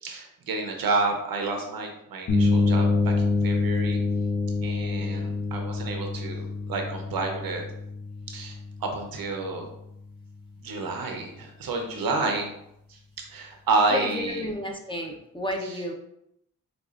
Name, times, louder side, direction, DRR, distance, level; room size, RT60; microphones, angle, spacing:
voice 1, 0.0-4.0 4.6-7.6 8.3-9.7 10.6-12.5 13.2-14.5 15.6-15.8, right 3 dB, 85° right, 3 dB, 0.7 m, -30 dB
sound 1, 2.3-10.0, left 3 dB, 45° left, 0.9 m, -27 dB
voice 2, 13.9-15.9, left 1 dB, 15° left, 2 dB, 0.6 m, -32 dB
5.1 x 2.4 x 2.4 m, 0.79 s
cardioid pair, 70°, 35 cm